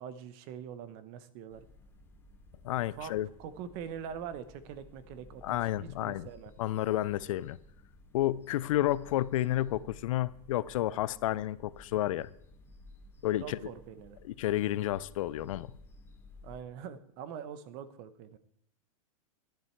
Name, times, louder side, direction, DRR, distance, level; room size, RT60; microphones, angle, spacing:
voice 1, 0.0-1.6 2.9-3.1 3.4-6.5 13.4-14.2 16.4-18.4, right 8 dB, 40° right, 14 dB, 0.9 m, -43 dB
sound 1, 1.5-16.6, left 2 dB, 10° left, 1.0 m, -56 dB
voice 2, 2.6-3.3 5.4-6.3 6.6-7.6 8.1-12.3 13.2-13.6 14.2-15.7, left 14 dB, 65° left, 19 dB, 0.5 m, -31 dB
11.0 x 10.5 x 4.5 m, 0.72 s
supercardioid pair, 145°, 18 cm